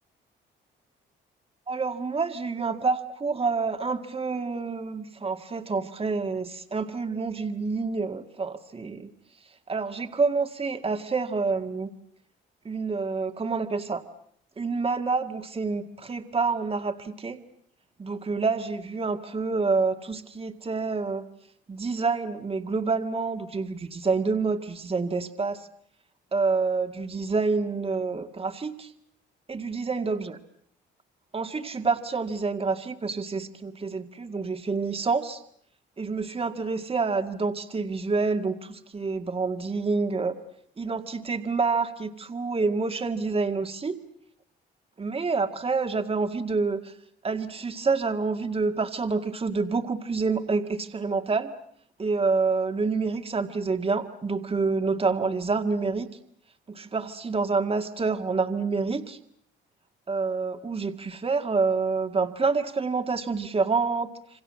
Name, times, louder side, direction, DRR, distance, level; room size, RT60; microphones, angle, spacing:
voice 1, 1.7-9.1 9.7-11.9 12.7-14.0 14.6-17.4 18.0-21.3 21.7-25.7 26.3-28.9 29.5-30.4 31.3-35.4 36.0-40.4 40.8-44.0 45.0-46.9 47.2-51.5 52.0-56.1 56.7-59.2 60.1-64.1, right 4 dB, 30° right, 7 dB, 2.0 m, -27 dB
28.0 x 25.0 x 7.6 m, 0.65 s
cardioid pair, 90°, 20 cm